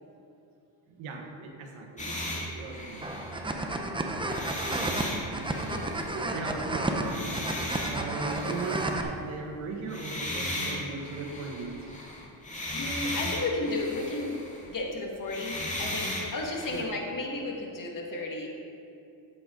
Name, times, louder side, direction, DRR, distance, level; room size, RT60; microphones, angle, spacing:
voice 1, 0.9-3.2 6.1-11.9 16.7-16.9, right 3 dB, 85° right, 2 dB, 1.6 m, -38 dB
sound 1, 2.0-3.8 4.2-6.4 7.0-9.0 9.9-14.8 15.2-16.8, left 1 dB, 15° left, 2.3 m, -36 dB
sound 2, 3.0-9.0, right 2 dB, 10° right, 0.8 m, -32 dB
voice 2, 5.6-6.0 12.7-14.4 14.7-18.5, left 2 dB, 40° left, 0 dB, 2.1 m, -33 dB
13.5 x 8.1 x 3.9 m, 2.7 s
cardioid pair, 105°, 47 cm